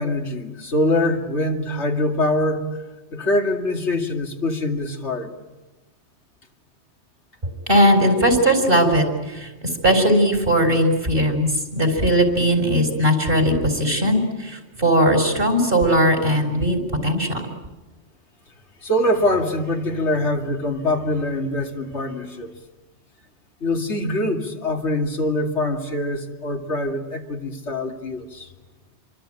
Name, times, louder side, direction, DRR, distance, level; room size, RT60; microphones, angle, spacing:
voice 1, 0.0-2.7 3.1-5.3 18.8-22.5 23.6-28.5, left 1 dB, 90° left, 3 dB, 2.8 m, -23 dB
voice 2, 7.4-9.5 9.8-17.4, equal, 55° right, 5 dB, 4.7 m, -19 dB
27.5 x 24.0 x 9.0 m, 1.1 s
omnidirectional pair, 1.1 m